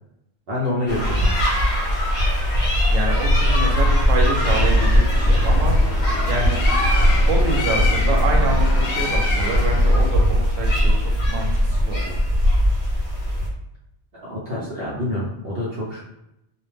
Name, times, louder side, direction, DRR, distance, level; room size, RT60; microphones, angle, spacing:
voice 1, 0.5-1.3 14.1-16.0, left 1 dB, 60° right, -7 dB, 0.8 m, -27 dB
sound 1, 0.9-13.5, equal, 40° left, 1.0 m, -19 dB
voice 2, 2.9-5.8 6.3-6.6 7.3-12.2, right 2 dB, 85° right, 1 dB, 1.0 m, -27 dB
Bird, 4.2-10.2, left 2 dB, 60° left, 0.6 m, -27 dB
2.4 x 2.1 x 3.2 m, 0.85 s
omnidirectional pair, 1.3 m